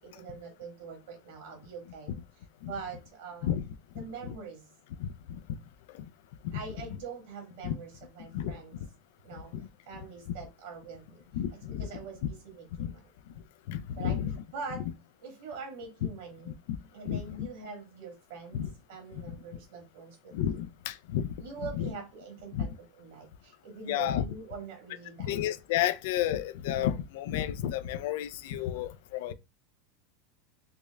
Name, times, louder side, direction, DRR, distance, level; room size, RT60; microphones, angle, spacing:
voice 1, 0.0-2.2 2.6-3.5 4.0-4.7 6.5-8.8 9.2-9.5 9.9-11.3 11.7-13.0 14.0-14.2 14.5-14.8 15.2-16.5 16.9-18.6 18.9-20.6 21.4-25.3, right 5 dB, 70° right, 1.8 m, -43 dB
voice 2, 4.0-4.3 5.0-5.4 5.9-6.0 6.5-6.6 7.6-7.8 8.3-8.6 9.5-9.7 11.3-11.9 12.8-12.9 13.7-14.4 16.5-16.6 17.0-17.2 18.5-18.7 19.1-19.3 20.3-21.3 21.7-21.9 22.5-22.7 23.9-24.2 25.2-29.3, left 11 dB, 75° left, 0.4 m, -32 dB
5.1 x 2.1 x 2.3 m
supercardioid pair, 110°, 0 cm